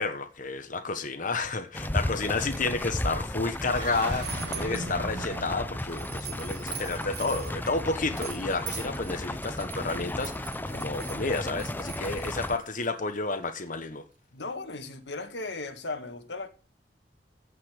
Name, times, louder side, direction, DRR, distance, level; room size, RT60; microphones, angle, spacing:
voice 1, 0.0-14.0, left 3 dB, 50° left, 1.3 m, -31 dB
sound 1, 1.7-12.6, left 1 dB, 10° left, 0.7 m, -34 dB
sound 2, 2.6-3.1 3.7-4.9 5.8-12.9, right 7 dB, 65° right, 3.2 m, -42 dB
sound 3, 3.6-6.6, right 2 dB, 80° right, 2.5 m, -40 dB
voice 2, 4.5-4.9 14.3-16.5, left 3 dB, 90° left, 2.0 m, -37 dB
15.5 x 5.7 x 8.0 m
head